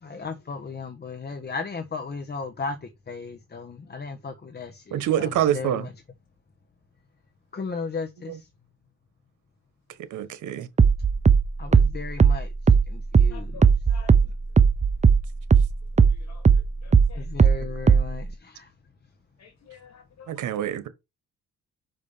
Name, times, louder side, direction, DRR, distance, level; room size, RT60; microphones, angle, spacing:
voice 1, 0.0-5.9 7.5-8.5 11.6-13.7 17.2-18.7, left 4 dB, 35° left, 1.3 m, -36 dB
voice 2, 4.9-5.9 10.1-10.7 20.3-20.9, right 11 dB, 80° right, 1.4 m, -26 dB
sound 1, 10.8-15.7 16.0-18.2, right 6 dB, 25° right, 0.8 m, -17 dB
voice 3, 13.3-14.1 16.0-16.4 16.8-17.2 19.4-20.4, left 7 dB, 60° left, 2.6 m, -49 dB
5.8 x 5.2 x 5.7 m
cardioid pair, 90°, 30 cm